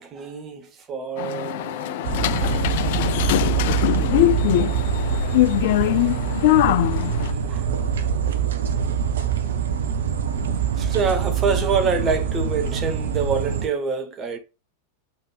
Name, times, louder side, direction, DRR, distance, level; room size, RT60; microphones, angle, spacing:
voice 1, 0.0-3.2 5.2-6.4 7.5-7.7 10.8-14.4, right 5 dB, 25° right, 1.3 m, -27 dB
sound 1, 1.2-7.3, left 15 dB, 50° left, 0.4 m, -22 dB
sound 2, 2.0-13.7, right 7 dB, 65° right, 0.8 m, -24 dB
7.5 x 3.8 x 3.4 m
figure-of-eight pair, 90°, 0 cm